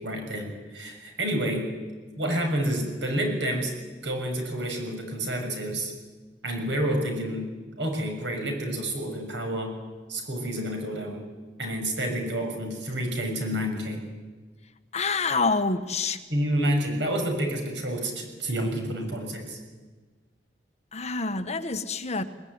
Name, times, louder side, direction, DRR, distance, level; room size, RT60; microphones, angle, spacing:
voice 1, 0.0-1.7 2.2-3.7 4.0-5.9 6.4-7.5 7.8-9.7 10.1-11.2 11.6-14.0 16.3-19.6, right 1 dB, 80° right, 4 dB, 6.5 m, -29 dB
voice 2, 14.9-16.2 20.9-22.2, left 4 dB, 40° left, 9 dB, 1.3 m, -27 dB
22.0 x 19.5 x 9.7 m, 1.3 s
head